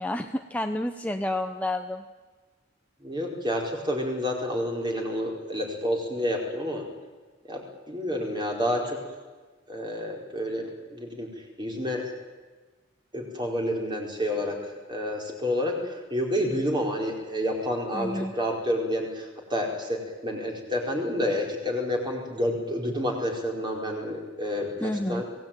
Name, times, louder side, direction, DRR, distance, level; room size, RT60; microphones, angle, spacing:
voice 1, 0.0-2.0 17.9-18.3 24.8-25.2, left 1 dB, 10° left, 5 dB, 1.0 m, -30 dB
voice 2, 3.0-6.8 7.5-9.2 9.7-11.3 11.6-12.0 13.1-25.2, equal, 25° right, 1 dB, 4.8 m, -29 dB
26.0 x 18.0 x 9.2 m, 1.3 s
head